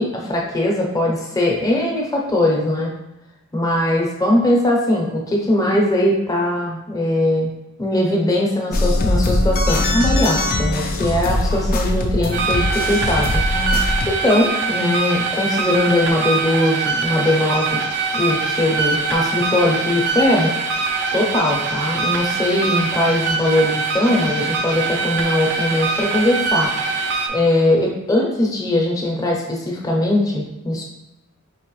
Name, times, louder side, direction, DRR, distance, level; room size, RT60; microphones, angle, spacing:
voice 1, 0.0-2.9 3.5-7.5 7.8-13.4 14.1-17.8 18.1-20.5 21.1-26.7 27.3-30.8, left 1 dB, 15° left, -2 dB, 0.8 m, -20 dB
sound 1, 8.7-14.1, left 1 dB, 45° left, 0.4 m, -21 dB
sound 2, 12.3-27.3, right 4 dB, 55° right, 0.5 m, -23 dB
4.7 x 3.1 x 3.1 m, 0.98 s
head